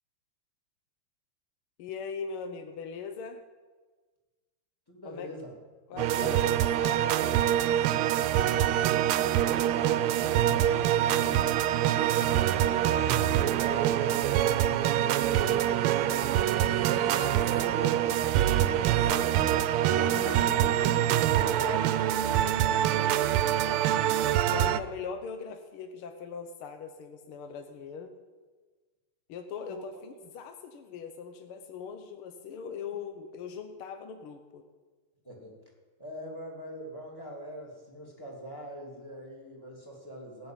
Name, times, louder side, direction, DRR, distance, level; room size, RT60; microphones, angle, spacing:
voice 1, 1.8-3.4 5.0-5.3 5.9-7.5 16.0-18.1 20.0-20.4 21.4-24.0 24.5-28.1 29.3-34.6, left 6 dB, 85° left, 7 dB, 1.8 m, -41 dB
voice 2, 4.9-5.5 5.9-6.4 8.6-15.7 18.7-19.5 19.9-21.2 23.2-23.3 29.7-29.8 35.2-35.5 36.0-40.5, equal, 10° left, -1 dB, 2.8 m, -43 dB
sound 1, 6.0-24.8, right 11 dB, 90° right, 1.5 m, -25 dB
16.0 x 7.1 x 8.9 m, 1.4 s
omnidirectional pair, 2.3 m